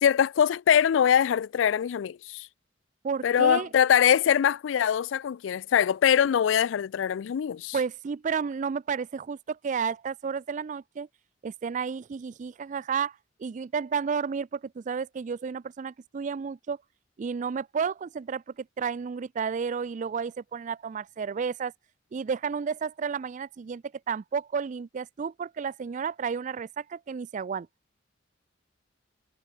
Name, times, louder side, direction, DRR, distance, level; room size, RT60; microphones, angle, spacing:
voice 1, 0.0-2.5 3.2-7.8, left 8 dB, 85° left, 0.3 m, -23 dB
voice 2, 3.0-3.7 7.7-11.1 11.4-16.8 17.2-21.7 22.1-27.7, right 6 dB, 40° right, 0.3 m, -32 dB
head